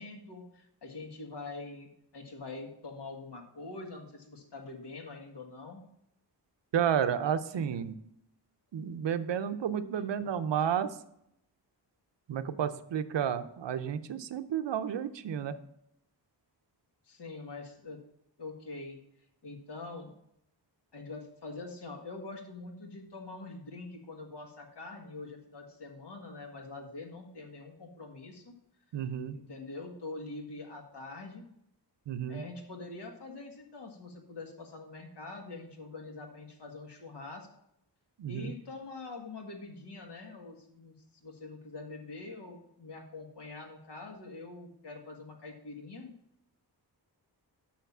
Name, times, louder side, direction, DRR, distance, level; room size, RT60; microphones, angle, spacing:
voice 1, 0.0-5.8 7.5-7.9 9.9-10.0 17.1-18.0 18.4-19.0 19.4-20.1 20.9-28.5 29.3-31.5 32.3-37.5 38.3-41.0 41.2-46.1, left 3 dB, 70° left, 2 dB, 1.8 m, -44 dB
voice 2, 6.7-7.9 8.7-10.9 12.3-15.6 28.9-29.4 32.1-32.4 38.2-38.5, right 8 dB, 85° right, 11 dB, 0.7 m, -31 dB
6.4 x 5.9 x 7.2 m, 0.77 s
wide cardioid pair, 150°, 42 cm